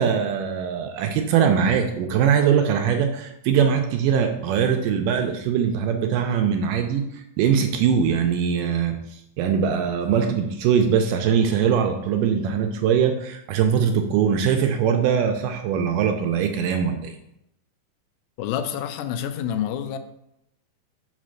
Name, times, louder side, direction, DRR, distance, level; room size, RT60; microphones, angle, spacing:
voice 1, 0.0-7.1 7.4-17.2, right 7 dB, 80° right, 5 dB, 2.0 m, -21 dB
voice 2, 18.4-20.0, left 9 dB, 90° left, 8 dB, 2.5 m, -28 dB
5.8 x 4.2 x 6.3 m, 0.81 s
omnidirectional pair, 4.1 m